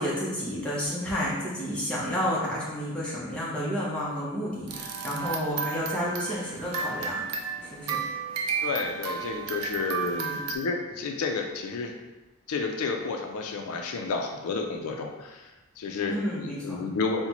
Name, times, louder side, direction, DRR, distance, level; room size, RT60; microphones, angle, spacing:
voice 1, 0.0-7.2 7.6-8.0 10.0-10.4 16.1-16.8, equal, 5° left, -7 dB, 0.6 m, -31 dB
sound 1, 4.7-10.6, right 5 dB, 90° right, 0.4 m, -33 dB
voice 2, 8.6-10.3 10.5-11.9 12.5-17.3, left 4 dB, 80° left, 2 dB, 0.4 m, -31 dB
3.9 x 2.1 x 2.9 m, 1.1 s
head